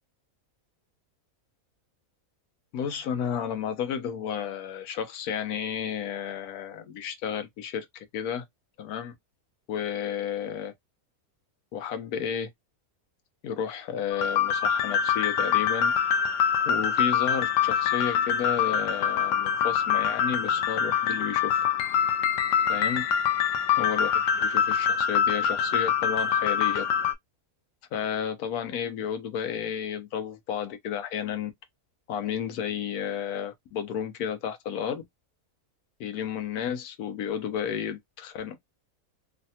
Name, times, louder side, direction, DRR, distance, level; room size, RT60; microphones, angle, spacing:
voice 1, 2.7-8.4 8.8-9.1 9.7-10.7 11.7-12.5 13.4-15.9 16.7-21.6 22.7-23.0 23.7-26.9 27.9-31.5 32.1-35.0 36.0-38.6, left 8 dB, 85° left, 1.2 m, -32 dB
sound 1, 14.1-27.1, left 8 dB, 70° left, 0.8 m, -25 dB
3.2 x 2.1 x 2.7 m
omnidirectional pair, 1.6 m